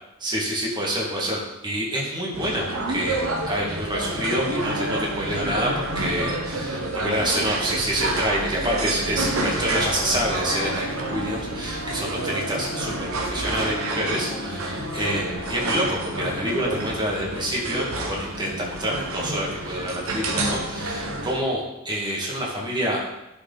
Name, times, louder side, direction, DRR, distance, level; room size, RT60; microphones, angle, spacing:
voice 1, 0.2-23.0, equal, 20° right, -4 dB, 2.0 m, -27 dB
sound 1, 2.3-21.3, right 2 dB, 90° right, 1.1 m, -29 dB
Harp, 8.0-19.9 20.2-20.3 21.2-21.3, left 1 dB, 75° left, 1.8 m, -40 dB
11.0 x 4.7 x 4.1 m, 0.92 s
head